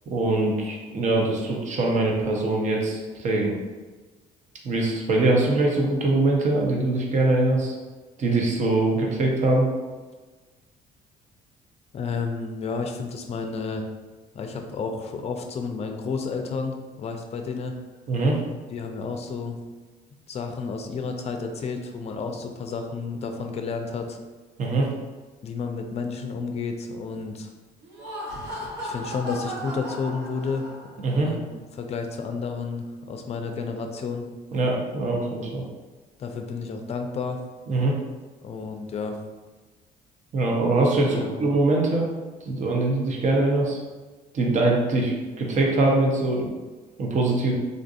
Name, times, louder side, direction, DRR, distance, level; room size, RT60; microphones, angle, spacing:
voice 1, 0.1-3.5 4.6-7.7 8.2-9.7 18.1-18.4 24.6-24.9 31.0-31.3 34.5-35.6 37.7-37.9 40.3-42.1 42.4-43.8 44.3-45.1 45.4-46.5 47.0-47.5, right 2 dB, 45° right, -1 dB, 0.8 m, -22 dB
voice 2, 11.9-13.9 14.3-17.8 18.7-19.6 20.3-24.2 25.4-27.5 28.8-30.7 31.1-34.3 36.2-37.4 38.4-39.2 41.1-41.4, left 4 dB, 40° left, 5 dB, 0.5 m, -31 dB
Laughter, 27.8-31.1, equal, 75° right, 0.9 m, -35 dB
3.8 x 2.5 x 2.5 m, 1.3 s
cardioid pair, 110°, 17 cm